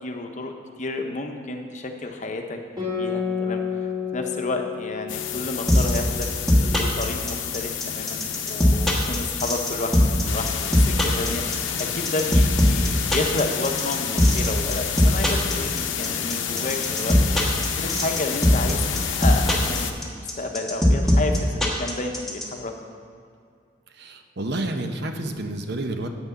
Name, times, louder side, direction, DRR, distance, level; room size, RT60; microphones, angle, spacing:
voice 1, 0.0-2.6 2.8-17.2 17.7-22.7, left 2 dB, 40° left, 4 dB, 0.8 m, -31 dB
Guitar, 2.8-7.7, left 6 dB, 25° right, 2.5 m, -31 dB
sound 1, 5.1-19.9, left 8 dB, 80° left, 0.7 m, -29 dB
sound 2, 5.7-22.4, left 1 dB, ahead, 1.2 m, -19 dB
voice 2, 23.9-26.1, right 1 dB, 60° right, 6 dB, 0.8 m, -29 dB
8.7 x 6.0 x 6.8 m, 2.3 s
head